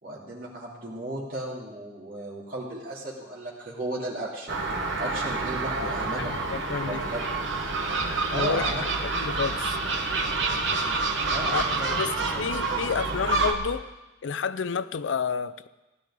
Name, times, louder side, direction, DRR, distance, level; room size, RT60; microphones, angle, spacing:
voice 1, 0.0-4.6 5.0-6.3 6.9-7.2 8.3-8.8 11.3-12.0 12.3-12.4 12.7-12.9, right 1 dB, 50° right, 3.0 m, -35 dB
Gull seagull, 4.5-13.5, right 3 dB, 85° right, 1.2 m, -28 dB
voice 2, 5.8-7.1 8.3-9.8 11.5-13.9 14.2-15.7, left 5 dB, 90° left, 0.5 m, -31 dB
16.0 x 11.5 x 3.8 m
head